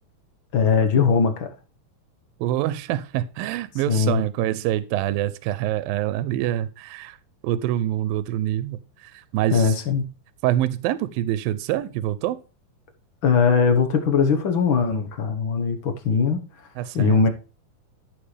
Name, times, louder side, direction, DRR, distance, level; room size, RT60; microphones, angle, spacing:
voice 1, 0.5-1.5 3.9-4.2 9.5-10.0 13.2-16.4 16.9-17.3, left 5 dB, 55° left, 1.4 m, -20 dB
voice 2, 2.4-7.2 7.4-9.8 10.4-12.4 16.8-17.2, right 13 dB, 80° right, 2.4 m, -25 dB
14.0 x 7.9 x 3.4 m
omnidirectional pair, 4.1 m